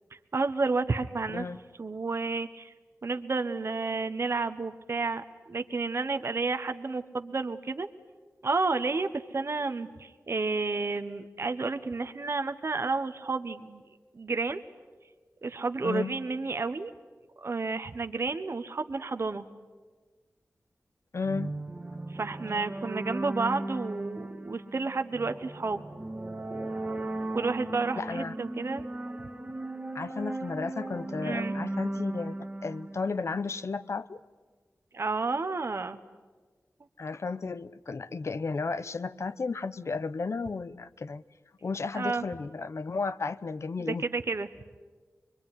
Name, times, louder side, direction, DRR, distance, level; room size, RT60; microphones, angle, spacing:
voice 1, 0.3-1.4 1.8-2.7 3.0-7.9 8.4-13.8 14.1-14.6 15.4-16.9 17.4-19.5 22.1-25.8 27.3-28.9 31.2-31.5 34.9-36.0 41.9-42.2 43.9-44.5, right 3 dB, 50° right, 8 dB, 1.0 m, -31 dB
voice 2, 1.3-1.6 15.8-16.1 21.1-21.5 28.0-28.3 29.9-32.4 32.6-34.2 37.0-41.2 41.6-44.1, left 4 dB, 60° left, 14 dB, 0.8 m, -33 dB
sound 1, 21.2-33.7, right 2 dB, 25° right, 1.5 m, -37 dB
25.0 x 22.5 x 9.8 m, 1.4 s
wide cardioid pair, 75°, 5 cm